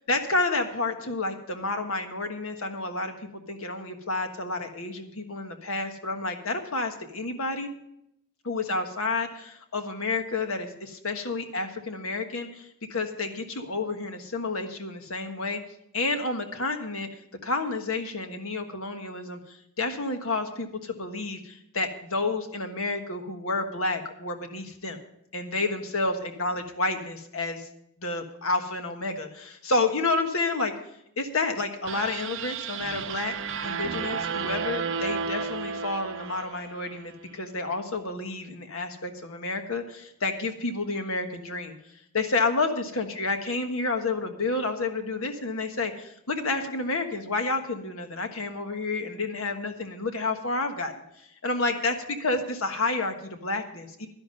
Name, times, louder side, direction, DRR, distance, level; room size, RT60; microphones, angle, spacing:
voice 1, 0.1-7.7 8.4-15.6 15.9-17.1 17.4-25.0 25.3-27.7 28.0-30.7 31.2-33.3 33.6-41.7 42.1-51.9 52.2-54.1, left 3 dB, 75° left, 6 dB, 1.4 m, -30 dB
sound 1, 31.8-37.1, right 6 dB, 60° right, 0.7 m, -33 dB
11.5 x 11.0 x 5.3 m, 0.76 s
head